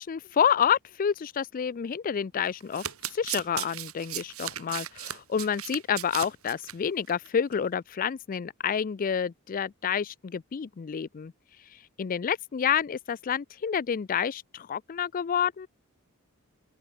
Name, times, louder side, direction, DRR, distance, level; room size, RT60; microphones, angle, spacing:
voice 1, 0.0-2.8 3.1-11.3 12.0-15.7, left 7 dB, 40° left, 0.4 m, -29 dB
Domestic sounds home sounds, 2.6-6.7 7.1-7.3 7.5-7.6, right 12 dB, 75° right, 3.7 m, -36 dB
open air
head